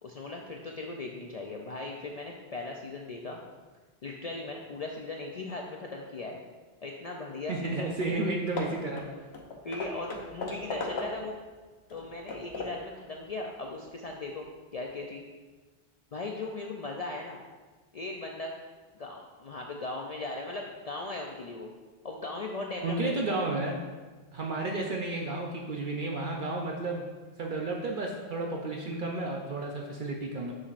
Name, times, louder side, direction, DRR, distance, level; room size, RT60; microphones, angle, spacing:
voice 1, 0.0-3.4 4.0-6.4 6.8-7.9 9.6-11.4 11.9-14.5 14.7-15.2 16.1-17.4 17.9-18.5 19.0-21.7 22.0-23.2, left 3 dB, 50° left, 0 dB, 0.5 m, -38 dB
voice 2, 7.5-9.0 22.8-23.8 24.3-27.0 27.4-30.5, right 2 dB, 55° right, 0 dB, 0.7 m, -32 dB
Hammer / Wood, 8.0-8.2 8.6-11.4 11.9-12.9, left 2 dB, 85° left, 1.1 m, -38 dB
7.0 x 6.5 x 2.5 m, 1.3 s
omnidirectional pair, 1.0 m